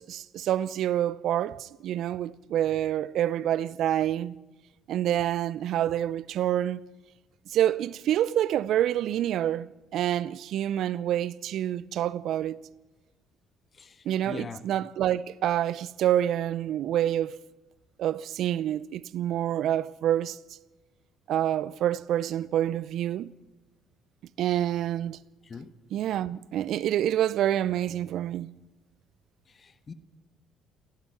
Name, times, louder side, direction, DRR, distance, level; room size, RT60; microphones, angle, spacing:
voice 1, 0.0-4.4 4.9-6.8 7.5-12.6 14.0-17.4 18.0-20.4 21.3-23.3 24.4-25.2 25.9-28.5, right 11 dB, 65° right, 0.6 m, -27 dB
voice 2, 13.8-14.6 25.4-25.7 29.5-29.9, left 5 dB, 40° left, 1.6 m, -42 dB
27.0 x 17.5 x 5.9 m
hypercardioid pair, 50°, 0 cm